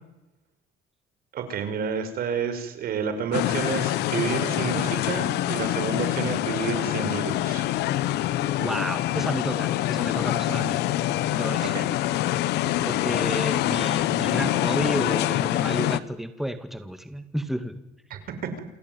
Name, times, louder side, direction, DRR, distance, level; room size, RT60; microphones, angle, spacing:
voice 1, 1.3-7.7 11.7-11.8 18.1-18.6, right 6 dB, 65° right, 9 dB, 5.4 m, -30 dB
sound 1, 3.3-16.0, left 14 dB, 85° left, 1.3 m, -25 dB
voice 2, 8.6-11.0 11.3-12.0 12.3-17.8, equal, ahead, 8 dB, 2.1 m, -31 dB
28.5 x 16.5 x 9.5 m, 0.96 s
cardioid pair, 110°, 17 cm